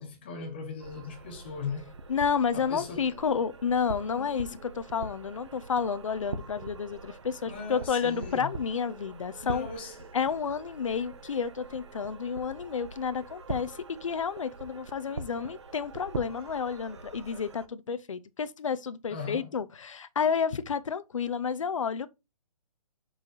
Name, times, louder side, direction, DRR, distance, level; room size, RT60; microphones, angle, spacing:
voice 1, 0.0-2.0 2.5-3.2 4.1-4.6 7.5-8.5 9.4-10.1 19.1-19.6, left 4 dB, 15° left, 1.0 m, -39 dB
sound 1, 0.8-17.7, right 3 dB, 50° right, 0.9 m, -43 dB
voice 2, 2.1-9.7 10.1-22.1, left 6 dB, 55° left, 0.8 m, -30 dB
5.7 x 5.1 x 4.8 m
hypercardioid pair, 180°, 20 cm